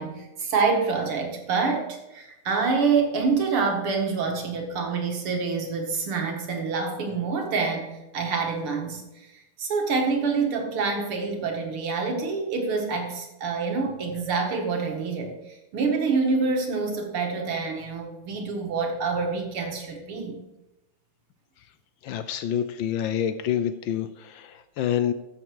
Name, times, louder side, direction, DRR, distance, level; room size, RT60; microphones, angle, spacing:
voice 1, 0.0-9.0 9.3-20.4, right 4 dB, 85° right, 2 dB, 2.7 m, -27 dB
voice 2, 22.0-25.1, left 9 dB, 75° left, 11 dB, 1.3 m, -27 dB
13.0 x 7.2 x 4.7 m, 0.98 s
omnidirectional pair, 2.4 m